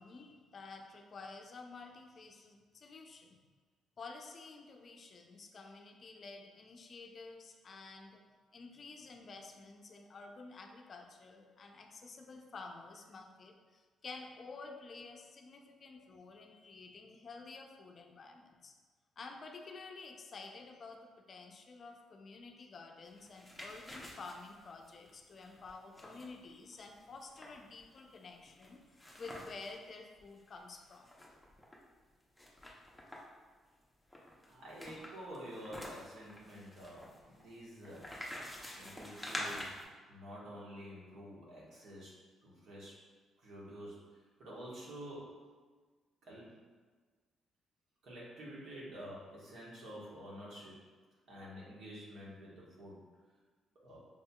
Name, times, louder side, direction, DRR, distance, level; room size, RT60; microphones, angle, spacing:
voice 1, 0.0-3.4 4.0-8.2 8.5-18.8 19.2-31.1, left 3 dB, 45° left, 3 dB, 0.4 m, -51 dB
sound 1, 23.1-29.8 30.2-30.3 30.5-31.8 32.4-33.4 34.1-39.8, left 1 dB, ahead, 0.7 m, -47 dB
voice 2, 34.5-38.1 38.7-39.8 40.1-43.0 43.4-44.0 44.4-45.5 46.2-46.6 48.0-50.8 51.3-53.0 53.8-54.0, equal, 70° right, -6 dB, 1.3 m, -49 dB
5.4 x 2.7 x 2.2 m, 1.4 s
cardioid pair, 90°, 0 cm